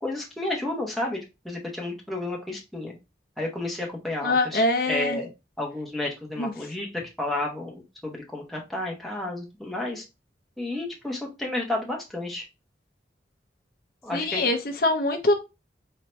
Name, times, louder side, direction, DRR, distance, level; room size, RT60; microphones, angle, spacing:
voice 1, 0.0-1.2 1.4-2.9 3.4-5.3 5.6-10.0 10.6-12.5 14.0-14.4, left 2 dB, ahead, -2 dB, 0.9 m, -31 dB
voice 2, 4.2-5.2 6.4-6.5 14.1-15.3, left 2 dB, 50° left, 5 dB, 0.7 m, -23 dB
4.3 x 2.8 x 3.2 m, 0.25 s
head